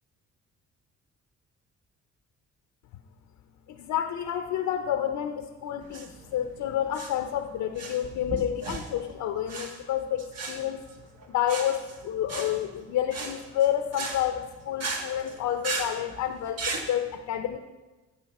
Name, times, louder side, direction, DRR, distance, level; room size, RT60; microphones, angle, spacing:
voice 1, 3.7-10.8 11.3-17.6, left 10 dB, 80° left, 7 dB, 0.7 m, -29 dB
sound 1, 5.8-16.9, right 3 dB, 55° right, 1.5 m, -37 dB
14.5 x 5.6 x 4.2 m, 1.2 s
cardioid pair, 90°, 30 cm